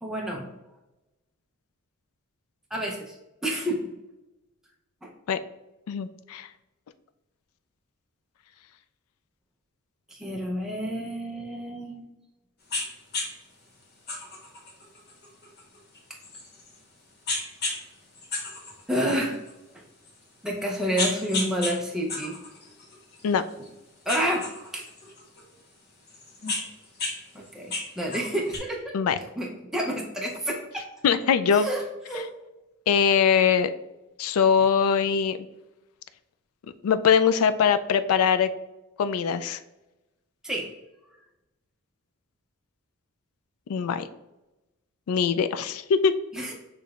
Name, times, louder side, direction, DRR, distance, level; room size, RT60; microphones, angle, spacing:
voice 1, 0.0-0.5 2.7-3.2 3.4-3.9 5.0-5.1 10.1-12.1 18.9-19.4 20.4-22.4 24.1-24.9 27.3-29.0 29.4-30.9 31.5-32.3 40.4-40.7 46.3-46.5, equal, ahead, -2 dB, 0.5 m, -29 dB
voice 2, 5.9-6.5 23.2-23.4 28.9-29.2 31.0-31.7 32.9-33.7 34.2-35.4 36.8-38.5 39.0-39.6 43.7-44.1 45.1-46.2, left 7 dB, 80° left, 11 dB, 0.3 m, -22 dB
sound 1, 12.7-12.9 13.1-13.3 14.1-16.8 17.3-17.8 18.1-19.5 20.1-20.2 20.7-21.7 22.1-23.7 24.1-25.4 26.1-27.1 27.4-28.6, left 3 dB, 50° left, 1.1 m, -32 dB
6.6 x 3.1 x 2.4 m, 0.99 s
head